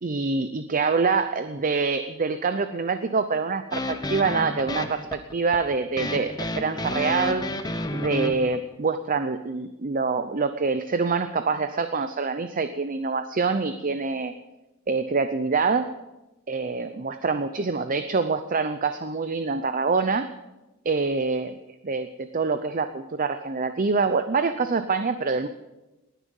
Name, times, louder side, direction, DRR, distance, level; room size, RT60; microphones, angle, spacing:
voice 1, 0.0-7.4 7.9-14.3 14.9-15.9 16.5-20.3 20.8-21.5 21.8-25.5, right 4 dB, 40° right, 10 dB, 0.7 m, -25 dB
sorta open g blue, 3.7-8.6, left 1 dB, 20° left, 1.1 m, -31 dB
19.5 x 10.0 x 5.5 m, 1.0 s
head